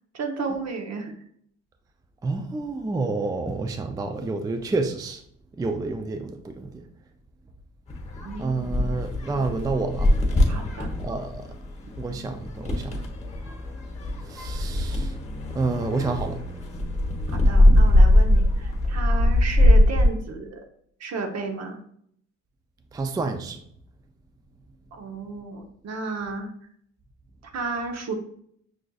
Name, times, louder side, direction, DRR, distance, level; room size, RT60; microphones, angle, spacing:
voice 1, 0.1-1.1 8.2-9.0 10.5-10.9 17.3-20.6 21.0-21.8 24.9-26.5 27.5-28.1, right 4 dB, 60° right, 4 dB, 0.9 m, -33 dB
voice 2, 2.2-5.2 5.6-6.8 8.4-10.1 11.0-11.5 12.0-13.0 14.3-15.1 15.5-16.4 22.9-23.6, right 3 dB, 15° right, 6 dB, 0.3 m, -29 dB
sound 1, 7.9-20.1, left 1 dB, 20° left, 0.9 m, -21 dB
6.1 x 2.5 x 2.3 m, 0.66 s
cardioid pair, 90°, 30 cm